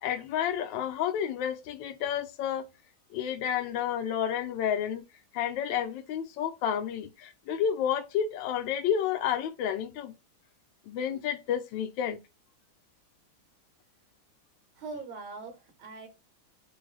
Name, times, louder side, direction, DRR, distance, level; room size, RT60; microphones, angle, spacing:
voice 1, 0.0-2.7 3.1-5.0 5.3-10.1 10.9-12.2, left 9 dB, 70° left, 1.2 m, -30 dB
voice 2, 14.8-16.1, right 3 dB, 60° right, 1.8 m, -41 dB
4.7 x 2.3 x 3.0 m
omnidirectional pair, 2.3 m